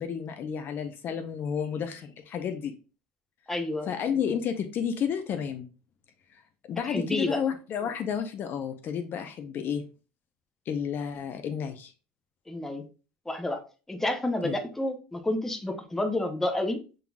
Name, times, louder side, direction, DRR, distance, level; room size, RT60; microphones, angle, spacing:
voice 1, 0.0-2.7 3.8-5.7 6.3-6.4 6.7-9.8 10.7-11.9 14.4-14.5, left 7 dB, 45° left, 7 dB, 0.6 m, -31 dB
voice 2, 3.5-3.9 6.9-7.4 12.5-12.8 13.3-13.6 13.9-16.8, left 1 dB, 5° left, 5 dB, 0.8 m, -29 dB
5.6 x 3.8 x 2.3 m, 0.34 s
supercardioid pair, 110°, 5 cm